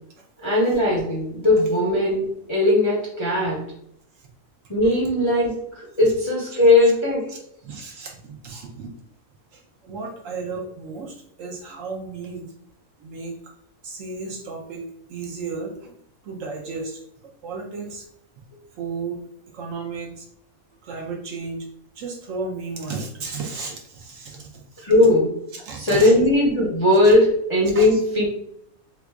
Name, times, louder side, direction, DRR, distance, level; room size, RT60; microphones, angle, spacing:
voice 1, 0.4-3.7 4.7-7.3 24.8-25.3 25.8-28.3, left 1 dB, 30° left, -5 dB, 0.5 m, -19 dB
voice 2, 6.5-6.9 7.6-8.9 9.5-12.5 13.0-13.5 13.8-14.8 15.1-16.0 16.2-17.0 17.4-18.1 18.8-19.2 19.5-20.3 20.8-21.7 21.9-24.8 25.5-26.2 27.7-28.0, right 4 dB, 70° right, 0 dB, 1.0 m, -34 dB
2.9 x 2.4 x 3.5 m, 0.70 s
omnidirectional pair, 1.5 m